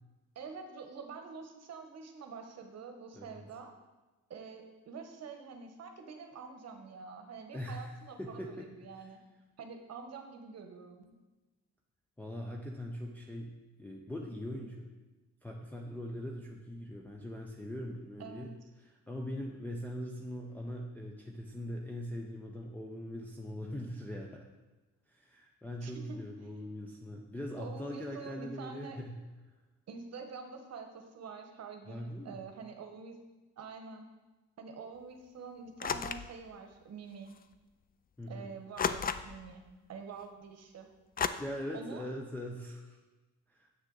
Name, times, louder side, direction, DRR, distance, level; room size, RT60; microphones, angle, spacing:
voice 1, 0.3-3.7 4.3-9.2 9.6-11.0 18.2-18.5 25.8-26.2 27.6-29.0 29.9-33.2 33.6-34.1 34.6-37.3 38.3-39.6 39.9-40.9 41.7-42.1, right 5 dB, 60° right, 5 dB, 1.1 m, -46 dB
voice 2, 7.5-9.1 12.2-14.9 15.4-18.5 18.8-24.5 25.1-29.2 31.9-32.4 38.2-38.5 41.4-43.0 43.5-43.7, equal, 5° left, -2 dB, 0.7 m, -41 dB
sound 1, 35.8-36.3 37.4-37.5 38.8-39.5 41.2-41.3, left 7 dB, 30° left, 0.4 m, -33 dB
7.4 x 6.3 x 4.0 m, 1.1 s
cardioid pair, 90°, 30 cm